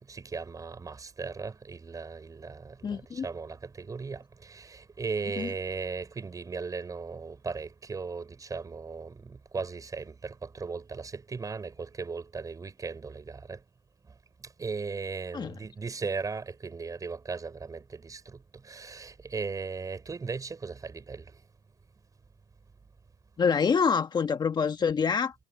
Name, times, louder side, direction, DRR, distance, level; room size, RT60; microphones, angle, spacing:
voice 1, 0.1-13.6 14.6-18.4 18.7-21.3, right 4 dB, 25° right, 6.0 m, -37 dB
voice 2, 2.8-3.2 5.4-5.5 15.3-15.5 23.4-25.4, left 6 dB, 30° left, 1.6 m, -26 dB
supercardioid pair, 85°, 14 cm